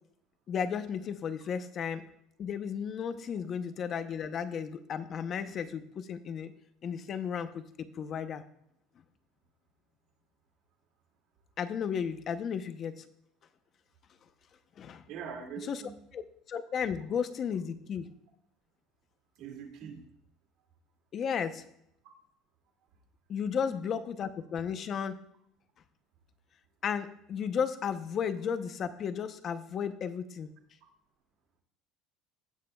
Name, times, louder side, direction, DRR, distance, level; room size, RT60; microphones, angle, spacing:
voice 1, 0.5-2.0 2.4-6.5 6.8-7.6 7.9-8.4 11.6-13.0 14.8-15.0 15.6-15.8 16.1-16.2 16.5-18.1 21.1-21.6 23.3-25.2 26.8-30.5, left 7 dB, 35° left, 10 dB, 0.7 m, -34 dB
voice 2, 15.1-15.9 19.4-20.0 23.5-23.7, right 7 dB, 65° right, 2 dB, 2.2 m, -43 dB
16.5 x 7.4 x 2.3 m, 0.73 s
cardioid pair, 135°, 0 cm